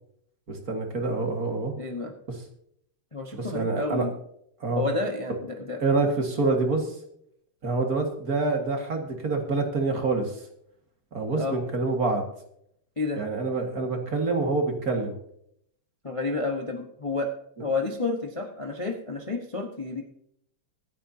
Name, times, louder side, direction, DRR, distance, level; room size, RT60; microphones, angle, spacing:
voice 1, 0.5-1.7 2.3-2.4 3.4-4.1 4.6-4.8 5.8-6.9 7.6-10.4 11.1-12.2 13.2-15.2, right 3 dB, 45° right, 3 dB, 2.3 m, -26 dB
voice 2, 1.8-2.1 3.1-4.1 4.8-5.8 11.4-11.6 13.0-13.2 16.0-17.3 17.6-20.0, left 3 dB, 20° left, 2 dB, 1.0 m, -30 dB
25.0 x 9.0 x 2.8 m, 0.71 s
omnidirectional pair, 2.3 m